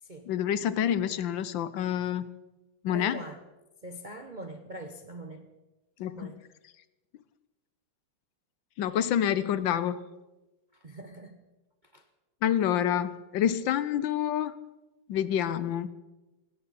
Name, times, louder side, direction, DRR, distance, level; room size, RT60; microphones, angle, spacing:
voice 1, 0.3-2.3 2.8-3.2 6.0-6.4 8.8-10.0 12.4-14.5 15.1-15.9, left 10 dB, 70° left, 15 dB, 1.3 m, -27 dB
voice 2, 2.9-3.4 3.8-5.5 6.1-6.4 10.7-11.4 11.9-12.0, right 1 dB, 45° right, 6 dB, 0.6 m, -43 dB
20.0 x 16.5 x 4.1 m, 1.1 s
omnidirectional pair, 2.3 m